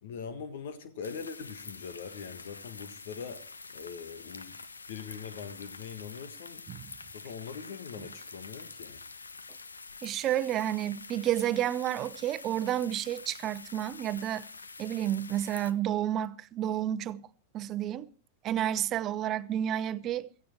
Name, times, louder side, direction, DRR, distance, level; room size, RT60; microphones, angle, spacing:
voice 1, 0.0-3.4 3.7-4.6 4.9-6.6 7.1-9.0, left 6 dB, 60° left, 1.5 m, -42 dB
sound 1, 1.0-15.7, left 4 dB, 85° left, 1.0 m, -47 dB
voice 2, 10.0-14.5 14.8-17.2 17.5-18.1 18.4-20.3, right 11 dB, 35° right, 0.8 m, -30 dB
16.5 x 15.0 x 4.5 m
figure-of-eight pair, 95°, 0 cm